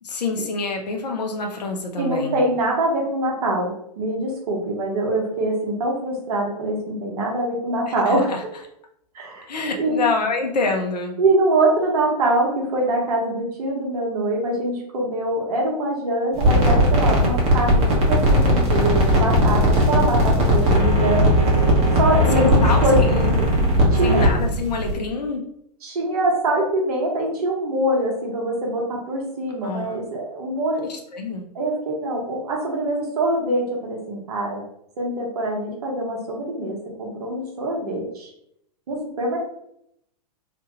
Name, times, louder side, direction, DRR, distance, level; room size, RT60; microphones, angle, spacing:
voice 1, 0.0-2.4 7.9-8.4 9.5-11.2 22.3-23.3 24.0-25.4 29.6-30.0 30.9-31.4, left 3 dB, 80° left, 3 dB, 0.6 m, -26 dB
voice 2, 1.9-8.3 9.1-9.5 9.8-10.0 11.2-21.3 22.0-23.4 23.9-24.2 25.8-30.8 31.5-34.6 35.0-38.3 38.9-39.4, right 1 dB, 65° right, -2 dB, 1.1 m, -24 dB
sound 1, 16.3-24.9, equal, 30° right, 1.0 m, -18 dB
2.9 x 2.2 x 3.0 m, 0.74 s
hypercardioid pair, 110°, 21 cm